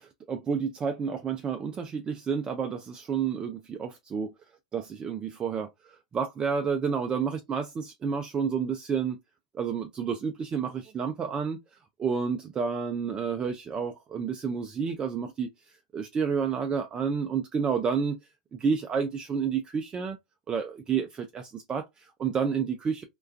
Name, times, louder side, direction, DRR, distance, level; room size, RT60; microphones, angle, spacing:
voice 1, 0.0-4.3 4.7-9.2 9.5-11.6 12.0-15.5 15.9-18.2 18.6-20.2 20.5-23.0, right 6 dB, 20° right, 0.3 m, -30 dB
2.3 x 2.2 x 2.4 m
hypercardioid pair, 110°, 4 cm